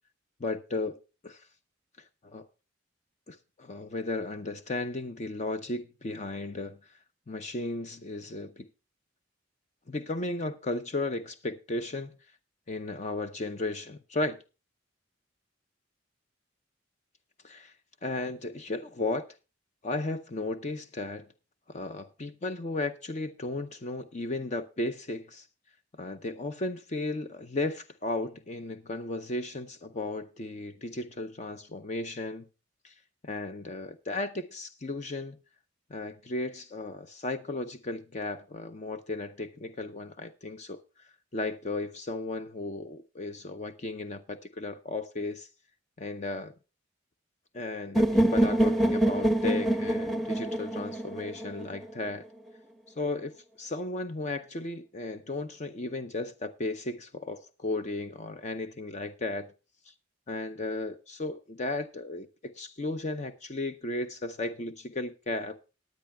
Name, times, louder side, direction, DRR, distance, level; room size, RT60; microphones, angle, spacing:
voice 1, 0.4-1.0 1.2-1.4 2.0-2.4 3.3-6.8 7.3-8.7 9.9-12.2 12.7-14.4 17.4-17.7 18.0-19.2 19.8-21.3 21.7-25.5 26.0-32.4 32.8-32.9 33.2-35.4 35.9-41.1 41.3-45.5 46.0-46.5 47.5-52.2 53.0-59.5 59.9-60.0 60.3-65.6, left 2 dB, 35° left, 0.6 m, -35 dB
sound 1, 48.0-51.9, right 1 dB, ahead, 0.9 m, -25 dB
19.0 x 9.6 x 2.2 m
head